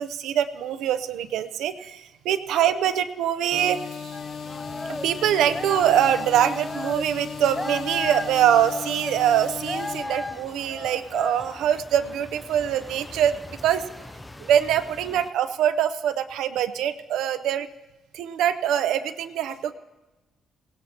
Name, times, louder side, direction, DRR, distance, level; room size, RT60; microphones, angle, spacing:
voice 1, 0.0-4.1 5.0-13.8 14.4-17.7 18.1-19.7, right 10 dB, 85° right, 10 dB, 0.6 m, -24 dB
sound 1, 3.5-10.0, left 6 dB, 65° left, 1.2 m, -36 dB
sound 2, 4.1-15.3, left 2 dB, 15° left, 0.5 m, -37 dB
18.5 x 17.0 x 2.9 m, 1.1 s
cardioid pair, 90°, 0 cm